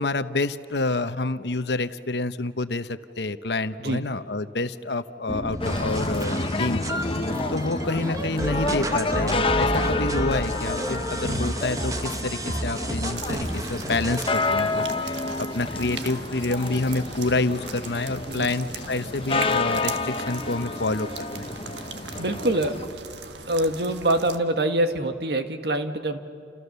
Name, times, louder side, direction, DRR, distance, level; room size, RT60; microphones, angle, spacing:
voice 1, 0.0-7.1 7.5-21.5, left 2 dB, 75° left, 11 dB, 1.0 m, -28 dB
sound 1, 5.3-14.3, right 1 dB, 20° right, 1.3 m, -31 dB
sound 2, 5.6-22.9, left 3 dB, 30° left, 0.9 m, -29 dB
sound 3, 13.1-24.4, right 5 dB, 85° right, 1.5 m, -40 dB
voice 2, 22.2-22.8 23.5-26.2, right 1 dB, 70° right, 7 dB, 1.8 m, -25 dB
29.5 x 28.0 x 6.9 m, 2.4 s
head